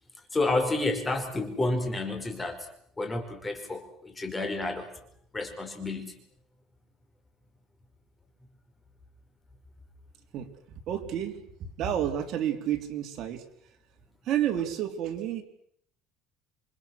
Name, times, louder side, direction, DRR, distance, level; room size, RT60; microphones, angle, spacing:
voice 1, 0.3-2.6 3.0-4.9 5.3-6.1, left 2 dB, 15° left, 5 dB, 5.0 m, -30 dB
voice 2, 10.9-13.4 14.2-15.4, right 10 dB, 55° right, 4 dB, 3.3 m, -30 dB
28.0 x 24.0 x 6.5 m, 0.69 s
cardioid pair, 130°, 0 cm